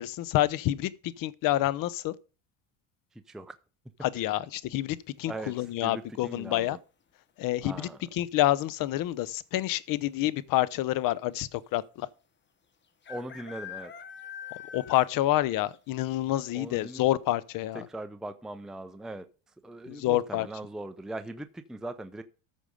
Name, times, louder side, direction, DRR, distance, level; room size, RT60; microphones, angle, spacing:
voice 1, 0.0-2.1 4.0-6.8 7.4-12.1 14.7-17.9 19.9-20.5, left 15 dB, 60° left, 0.8 m, -28 dB
sound 1, 5.5-6.0 7.8-8.2 8.4-8.5 8.8-9.3 10.1-10.2 10.4-10.5 12.0-12.1 13.0-15.3 15.7-15.8 16.3-16.4 16.8-16.9, left 8 dB, 30° left, 1.2 m, -44 dB
voice 2, 5.8-6.7 7.6-8.0 13.1-13.9 16.5-17.1 17.7-19.2 19.6-22.2, right 2 dB, ahead, 0.6 m, -40 dB
13.5 x 5.3 x 5.1 m
cardioid pair, 120°, 38 cm